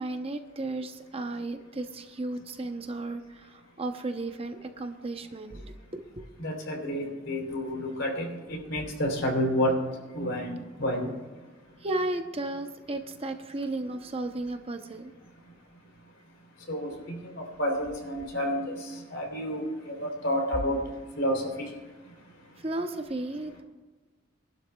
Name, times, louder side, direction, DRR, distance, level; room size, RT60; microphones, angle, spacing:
voice 1, 0.0-6.2 11.8-15.1 22.6-23.6, right 2 dB, 30° right, 6 dB, 0.7 m, -34 dB
voice 2, 6.4-9.7 10.1-11.1 16.7-17.2 17.6-18.7 19.1-20.8 21.2-21.4, equal, 65° left, 1 dB, 3.3 m, -29 dB
26.0 x 12.0 x 2.3 m, 1.3 s
head